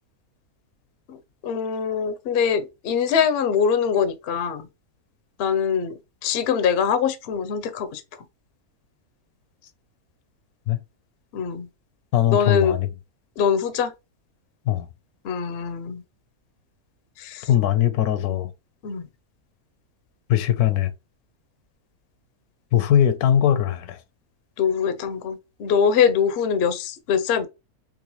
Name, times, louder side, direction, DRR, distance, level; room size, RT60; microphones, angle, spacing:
voice 1, 1.4-4.7 5.4-8.0 11.3-11.7 12.3-12.8 13.4-13.9 15.2-16.0 17.2-17.5 18.8-19.1 24.6-27.5, left 7 dB, 65° left, 0.6 m, -23 dB
voice 2, 12.1-12.9 14.6-14.9 17.5-18.5 20.3-20.9 22.7-24.0, left 11 dB, 80° left, 1.1 m, -20 dB
3.8 x 3.0 x 3.0 m
omnidirectional pair, 1.6 m